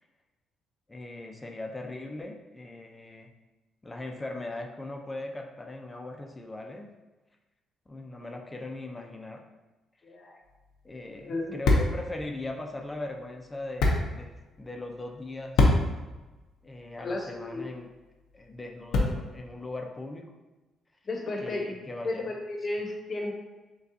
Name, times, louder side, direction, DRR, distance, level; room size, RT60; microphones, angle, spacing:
voice 1, 0.9-3.3 3.8-6.9 7.9-9.5 10.8-15.8 16.6-17.9 18.3-20.3 21.4-22.2, left 2 dB, 15° left, 2 dB, 0.5 m, -39 dB
voice 2, 10.0-10.4 11.2-11.6 17.0-17.7 21.0-21.8 22.0-23.3, left 2 dB, 40° left, 1 dB, 0.8 m, -33 dB
sound 1, 10.4-19.5, left 2 dB, 85° left, 0.7 m, -30 dB
6.5 x 2.3 x 2.7 m, 1.1 s
cardioid pair, 115°, 0 cm